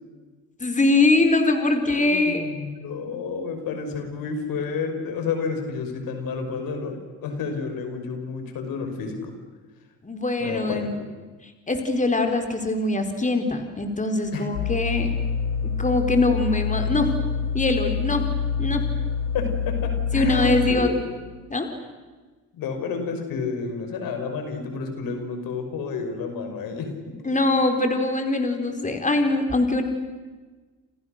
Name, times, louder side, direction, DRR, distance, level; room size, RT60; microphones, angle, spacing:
voice 1, 0.6-2.5 10.0-10.9 11.7-15.1 15.8-17.1 17.5-18.2 18.6-18.9 20.1-20.9 21.5-21.7 27.3-29.8, left 2 dB, 20° left, 5 dB, 4.2 m, -22 dB
voice 2, 1.9-9.3 10.4-10.9 14.3-14.5 19.3-21.0 22.5-27.2, left 5 dB, 65° left, 6 dB, 5.7 m, -30 dB
sound 1, 14.5-20.7, left 6 dB, 85° left, 3.8 m, -26 dB
29.0 x 28.0 x 6.6 m, 1.3 s
supercardioid pair, 65°, 37 cm